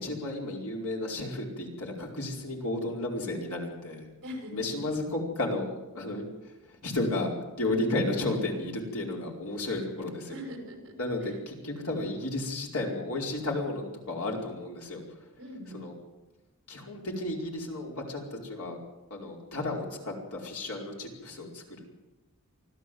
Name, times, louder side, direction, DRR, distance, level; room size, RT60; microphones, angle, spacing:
voice 1, 0.0-4.1 4.5-6.2 6.8-10.3 11.0-15.0 15.7-15.9 16.7-18.8 19.1-21.9, left 2 dB, 80° left, -1 dB, 4.8 m, -33 dB
voice 2, 4.2-4.9 10.3-11.4 15.4-15.9, equal, 55° right, 3 dB, 6.0 m, -42 dB
25.0 x 15.0 x 7.9 m, 1.1 s
head